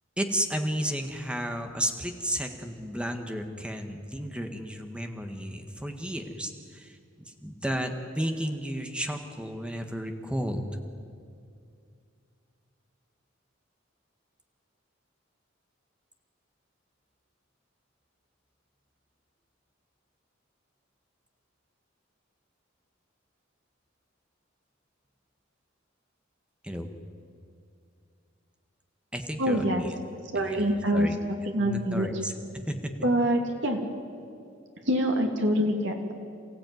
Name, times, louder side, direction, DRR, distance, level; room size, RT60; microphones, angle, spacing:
voice 1, 0.2-7.0 7.3-10.7 26.6-26.9 29.1-29.9 30.5-31.2 31.6-32.3 32.7-32.9, equal, 5° right, 5 dB, 1.7 m, -33 dB
voice 2, 29.4-29.8 30.3-31.1 31.5-32.1 33.0-33.8 34.9-36.1, equal, 65° right, 3 dB, 3.0 m, -25 dB
28.5 x 15.5 x 9.5 m, 2.4 s
head